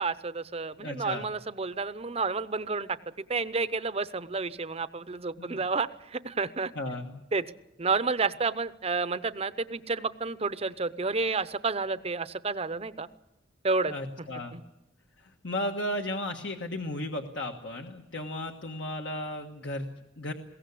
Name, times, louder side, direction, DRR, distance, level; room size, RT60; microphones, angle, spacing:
voice 1, 0.0-6.7 7.3-7.4 7.8-13.1 13.6-13.9 14.5-14.6, right 4 dB, 30° right, 14 dB, 0.7 m, -30 dB
voice 2, 0.8-1.3 5.4-5.6 6.7-7.2 13.9-14.6 15.2-20.3, left 1 dB, 65° left, 2 dB, 1.4 m, -35 dB
21.5 x 17.0 x 8.4 m, 0.89 s
head